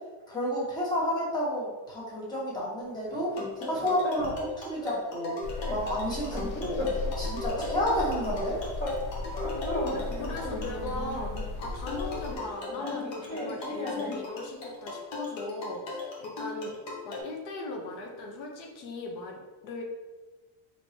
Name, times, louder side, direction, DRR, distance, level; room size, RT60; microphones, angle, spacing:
voice 1, 0.3-5.3 5.7-6.9 7.2-8.6, equal, 10° left, -6 dB, 1.0 m, -30 dB
sound 1, 3.1-4.5 4.8-5.0 5.3-7.2 7.5-9.0 9.3-11.5 12.3-14.3, left 2 dB, 30° left, 1.0 m, -37 dB
sound 2, 3.3-17.2, left 4 dB, 70° left, 1.1 m, -38 dB
sound 3, 5.4-12.4, left 2 dB, 45° left, 0.5 m, -37 dB
voice 2, 9.5-16.8 17.0-19.8, left 2 dB, 85° left, 1 dB, 0.9 m, -38 dB
4.5 x 3.0 x 2.8 m, 1.2 s
cardioid pair, 145°, 47 cm